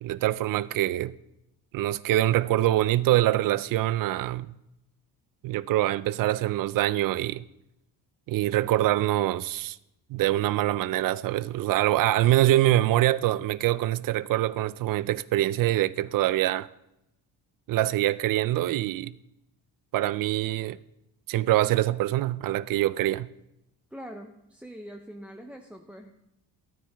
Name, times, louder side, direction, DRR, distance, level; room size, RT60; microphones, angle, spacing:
voice 1, 0.0-1.1 1.7-4.6 5.4-7.4 8.3-9.8 10.1-16.7 17.7-19.1 19.9-20.8 21.3-23.3, right 15 dB, 60° right, 0.5 m, -24 dB
voice 2, 23.9-26.1, equal, 5° right, 0.6 m, -43 dB
13.5 x 12.0 x 3.4 m
cardioid pair, 140°, 38 cm